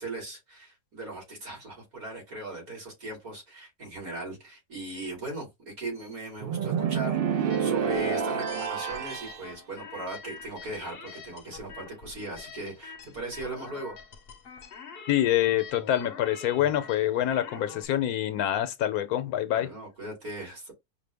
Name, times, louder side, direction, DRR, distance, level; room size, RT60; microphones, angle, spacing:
voice 1, 0.0-14.0 19.5-20.7, right 2 dB, 65° right, 3.1 m, -39 dB
sound 1, 6.4-9.4, right 7 dB, 85° right, 0.5 m, -28 dB
sound 2, 7.5-17.8, left 6 dB, 55° left, 0.7 m, -45 dB
voice 2, 15.1-19.7, left 12 dB, 75° left, 1.1 m, -26 dB
5.1 x 2.2 x 3.4 m
omnidirectional pair, 1.6 m